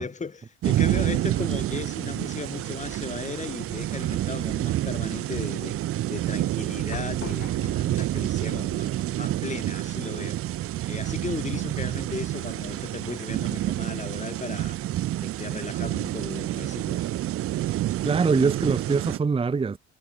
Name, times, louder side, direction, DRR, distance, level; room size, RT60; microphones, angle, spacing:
voice 1, 0.0-5.8 6.1-10.4 10.9-14.8 15.2-17.1, left 4 dB, 20° left, 3.1 m, -36 dB
sound 1, 0.6-19.2, right 14 dB, 45° right, 0.7 m, -28 dB
sound 2, 3.6-10.1, left 9 dB, 45° left, 7.7 m, -47 dB
voice 2, 18.0-19.8, right 4 dB, 15° right, 0.9 m, -23 dB
hypercardioid pair, 80°, 32 cm